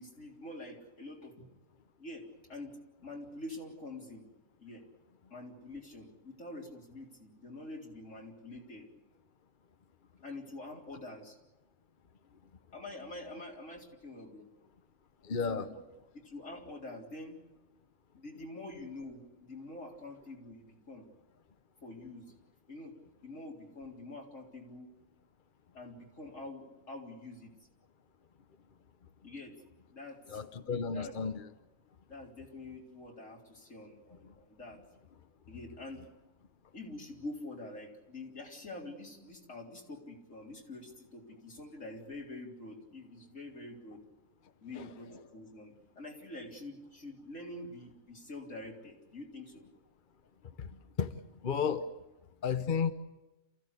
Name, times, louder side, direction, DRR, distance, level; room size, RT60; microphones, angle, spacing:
voice 1, 0.0-1.5 2.0-4.3 4.6-4.8 5.3-8.9 10.2-11.4 12.7-14.5 15.5-15.8 16.1-17.4 18.1-21.1 21.8-22.3 22.7-22.9 23.2-24.9 25.7-27.5 29.2-29.6 29.9-31.2 32.1-34.8 35.5-36.0 36.7-44.0 44.6-49.7, left 2 dB, 80° left, -1 dB, 4.2 m, -46 dB
voice 2, 15.2-15.7 30.3-31.3 44.7-44.9 50.6-50.7 51.0-51.2 51.4-51.8 52.4-52.9, left 6 dB, 45° left, 10 dB, 1.0 m, -32 dB
28.0 x 15.5 x 8.3 m, 1.1 s
omnidirectional pair, 1.3 m